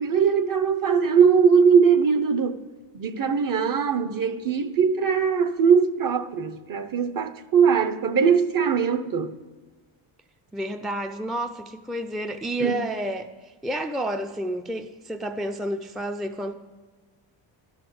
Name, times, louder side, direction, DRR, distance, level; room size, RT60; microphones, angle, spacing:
voice 1, 0.0-2.6 2.9-9.4 12.6-12.8, right 6 dB, 40° right, 0.9 m, -21 dB
voice 2, 10.5-16.5, right 1 dB, ahead, 0.5 m, -30 dB
12.0 x 6.3 x 7.7 m
cardioid pair, 90°, 49 cm